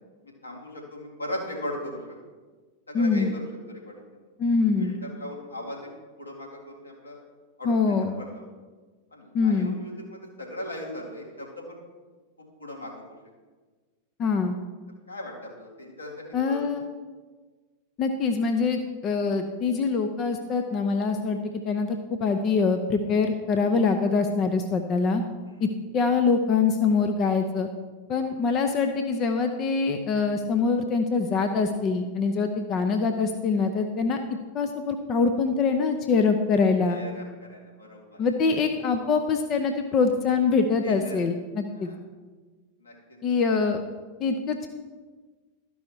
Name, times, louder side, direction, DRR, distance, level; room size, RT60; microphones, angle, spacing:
voice 1, 0.2-2.2 2.9-4.0 4.8-5.9 6.2-7.2 7.6-8.5 9.1-11.8 12.4-13.2 15.1-16.6 25.5-25.7 28.1-28.2 32.4-32.5 36.9-38.5 40.8-41.2 41.7-42.0 42.8-42.9 43.3-43.4, left 1 dB, 85° left, -2 dB, 2.1 m, -38 dB
voice 2, 2.9-3.3 4.4-4.9 7.6-8.1 9.3-9.8 14.2-14.6 16.3-16.8 18.0-21.4 21.6-25.2 25.6-25.7 25.9-27.7 28.1-34.2 34.5-37.0 38.2-41.9 43.2-43.8 44.2-44.7, left 4 dB, 35° left, 6 dB, 0.6 m, -24 dB
12.5 x 5.5 x 4.6 m, 1.4 s
figure-of-eight pair, 90°, 0 cm